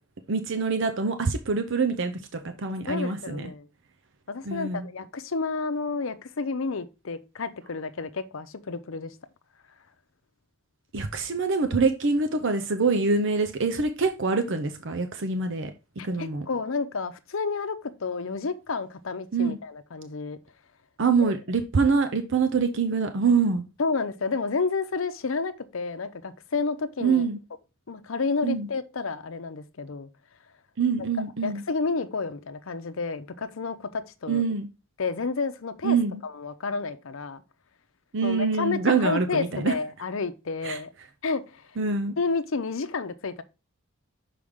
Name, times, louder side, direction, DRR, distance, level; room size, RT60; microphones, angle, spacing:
voice 1, 0.3-3.5 4.4-4.9 10.9-15.7 16.0-16.5 19.3-19.6 21.0-23.6 27.0-27.4 28.4-28.7 30.8-31.6 34.3-34.7 35.8-36.2 38.1-39.7 40.6-40.8 41.8-42.2, right 4 dB, 60° right, 0.6 m, -25 dB
voice 2, 2.9-3.7 4.3-9.1 16.0-20.4 21.2-21.4 23.8-27.2 27.9-30.1 31.4-34.4 35.0-36.0 36.2-37.4 38.2-40.9 41.2-41.6 42.2-43.4, left 4 dB, 65° left, 0.7 m, -30 dB
6.3 x 5.0 x 3.6 m
head